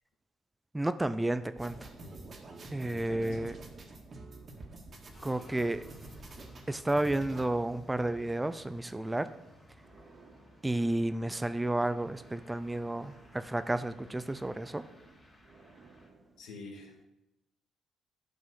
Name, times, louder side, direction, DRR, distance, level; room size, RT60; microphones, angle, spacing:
voice 1, 0.7-1.9 2.7-3.6 5.2-5.8 6.7-9.3 10.6-14.9, right 1 dB, 15° right, 12 dB, 0.5 m, -31 dB
sound 1, 0.8-7.8 8.1-16.4, right 3 dB, 60° right, 1.9 m, -58 dB
sound 2, 1.6-7.4, right 2 dB, 45° right, 1.8 m, -48 dB
voice 2, 3.1-3.6 16.4-17.0, left 3 dB, 80° left, 1 dB, 2.1 m, -48 dB
sound 3, 5.1-16.1, left 1 dB, 30° left, 3.2 m, -58 dB
11.0 x 5.4 x 6.2 m, 0.95 s
cardioid pair, 90°, 0 cm